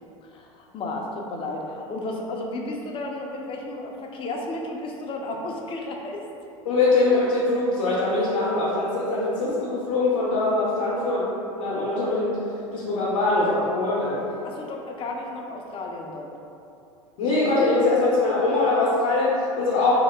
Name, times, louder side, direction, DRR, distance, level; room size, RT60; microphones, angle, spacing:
voice 1, 0.2-6.2 14.4-16.3, left 2 dB, 30° left, 0 dB, 0.5 m, -33 dB
voice 2, 6.7-11.2 11.5-12.4 12.7-14.4 17.2-19.9, left 2 dB, 70° left, -8 dB, 0.7 m, -22 dB
2.8 x 2.1 x 3.3 m, 2.7 s
hypercardioid pair, 85°, 17 cm